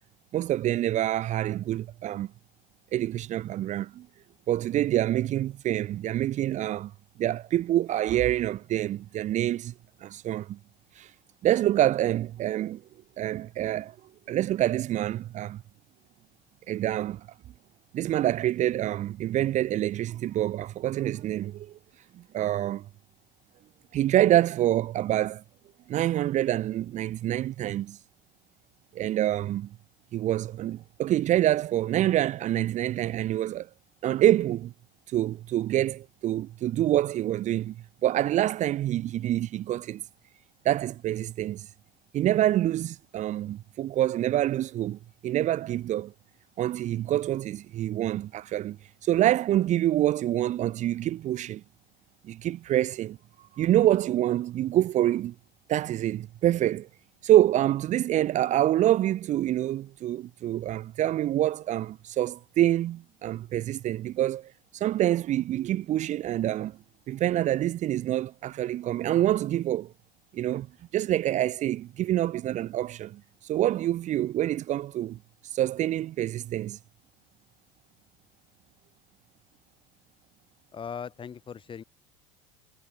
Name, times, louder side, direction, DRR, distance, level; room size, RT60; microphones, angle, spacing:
voice 1, 0.3-2.3 2.9-4.1 4.5-6.9 7.2-9.7 10.0-10.6 11.0-11.1 11.4-12.8 13.2-13.9 14.3-15.6 16.7-17.3 17.9-21.8 22.3-22.9 23.9-25.4 25.9-28.0 28.9-29.8 30.1-33.7 34.0-34.7 35.1-37.8 38.0-40.0 40.6-41.7 42.1-46.1 46.6-48.8 49.0-51.6 52.2-53.2 53.6-55.3 55.7-56.9 57.2-66.8 67.1-69.9 70.3-70.7 70.9-75.2 75.5-76.8, right 13 dB, 45° right, 1.0 m, -26 dB
voice 2, 80.7-81.8, left 7 dB, 30° left, 3.2 m, -39 dB
supercardioid pair, 105°, 17 cm